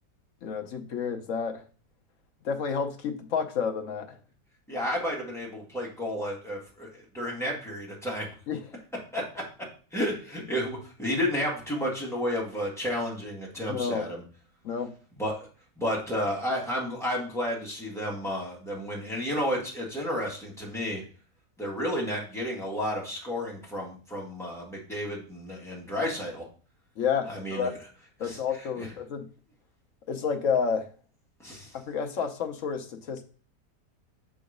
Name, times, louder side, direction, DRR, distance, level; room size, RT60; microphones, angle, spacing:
voice 1, 0.4-1.6 2.4-4.2 8.5-8.6 13.7-14.1 14.6-14.9 27.0-27.7 28.2-29.3 30.1-30.9 31.9-33.2, left 6 dB, 60° left, 6 dB, 0.9 m, -30 dB
voice 2, 4.7-8.3 9.1-9.4 9.9-14.2 15.2-15.4 15.8-21.0 21.6-26.4 27.3-27.8 28.2-28.9 31.4-31.7, equal, ahead, -4 dB, 1.9 m, -32 dB
6.2 x 3.9 x 5.1 m, 0.40 s
omnidirectional pair, 1.9 m